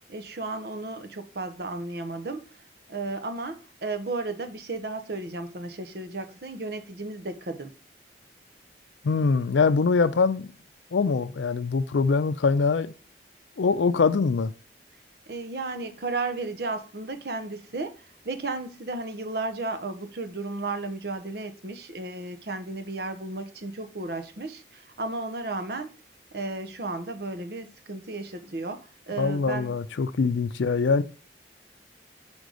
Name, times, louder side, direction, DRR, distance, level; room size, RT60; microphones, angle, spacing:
voice 1, 0.0-7.7 15.3-25.9 26.3-29.8, right 3 dB, 60° right, 0.8 m, -34 dB
voice 2, 9.0-10.5 10.9-12.9 13.6-14.5 29.2-31.0, left 4 dB, 85° left, 0.4 m, -23 dB
5.2 x 3.9 x 4.8 m
head